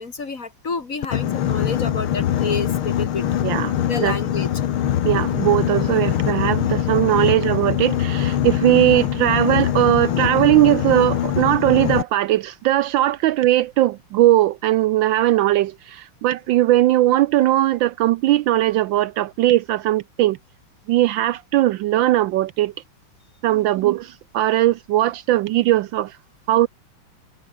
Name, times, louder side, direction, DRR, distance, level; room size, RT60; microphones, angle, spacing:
voice 1, 0.0-3.2 3.9-4.5 23.5-23.7, left 4 dB, 40° left, 2.7 m, -29 dB
Boat Water vehicle, 1.0-12.0, left 10 dB, 85° left, 2.1 m, -22 dB
voice 2, 3.4-3.7 4.0-4.2 5.0-20.4 20.9-22.7 23.4-26.2 26.5-26.7, right 14 dB, 75° right, 1.2 m, -19 dB
omnidirectional pair, 2.3 m